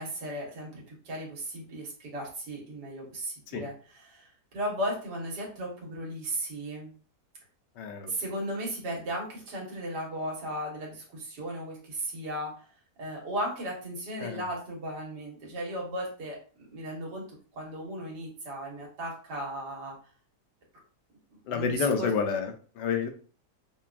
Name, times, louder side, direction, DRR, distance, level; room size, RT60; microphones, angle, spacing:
voice 1, 0.0-4.3 4.5-6.9 8.1-12.5 13.0-16.4 16.7-17.2 17.5-20.0 21.5-22.1, right 1 dB, 75° right, -1 dB, 1.8 m, -36 dB
voice 2, 7.8-8.1 14.2-14.4 21.5-23.1, left 6 dB, 85° left, 5 dB, 1.3 m, -29 dB
5.6 x 2.3 x 2.4 m, 0.39 s
omnidirectional pair, 1.8 m